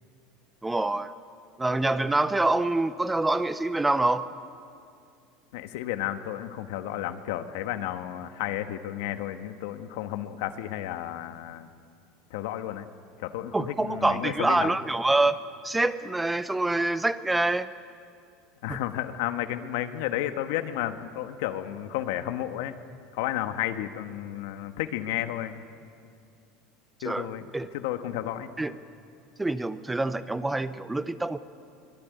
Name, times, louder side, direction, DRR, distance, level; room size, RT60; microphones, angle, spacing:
voice 1, 0.6-1.1 1.6-4.3 13.5-15.4 15.6-17.7 18.7-18.8 27.0-27.3 27.5-27.7 28.6-28.8 29.4-31.4, right 2 dB, 10° right, 13 dB, 0.7 m, -26 dB
voice 2, 5.5-11.7 12.3-12.9 13.2-14.7 18.6-22.7 23.1-25.6 27.0-28.5, left 12 dB, 75° left, 8 dB, 1.4 m, -32 dB
24.0 x 20.5 x 9.4 m, 2.4 s
supercardioid pair, 135°, 0 cm